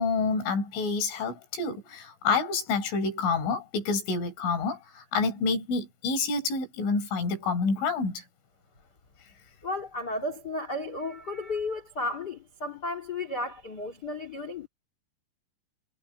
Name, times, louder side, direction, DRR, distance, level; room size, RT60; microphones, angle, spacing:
voice 1, 0.0-8.2, left 4 dB, 70° left, 7.1 m, -28 dB
voice 2, 9.6-14.7, left 2 dB, 50° left, 1.2 m, -33 dB
omnidirectional pair, 5.8 m